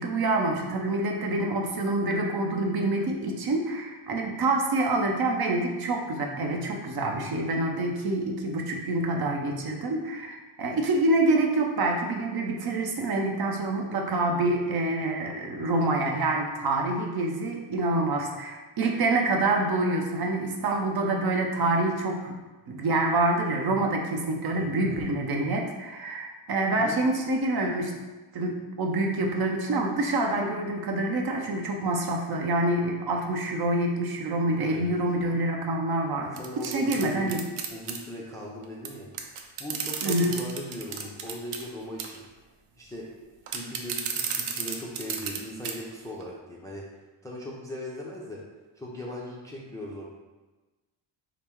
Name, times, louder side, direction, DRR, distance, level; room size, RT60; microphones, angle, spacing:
voice 1, 0.0-22.4 22.7-27.9 28.3-36.4 36.6-37.4 40.0-40.4, right 2 dB, 50° right, 1 dB, 0.7 m, -26 dB
voice 2, 24.5-25.0 26.8-27.0 34.5-34.9 36.4-37.3 37.7-42.2 42.8-43.1 43.5-46.8 47.2-48.4 48.8-50.1, equal, 5° left, -4 dB, 0.4 m, -39 dB
sound 1, 36.4-38.0 38.8-38.9 39.1-41.6 42.0-42.2 43.5-45.4 45.6-45.7 46.2-46.3, right 7 dB, 85° right, 0.7 m, -33 dB
5.5 x 2.0 x 4.4 m, 1.2 s
cardioid pair, 150°, 50 cm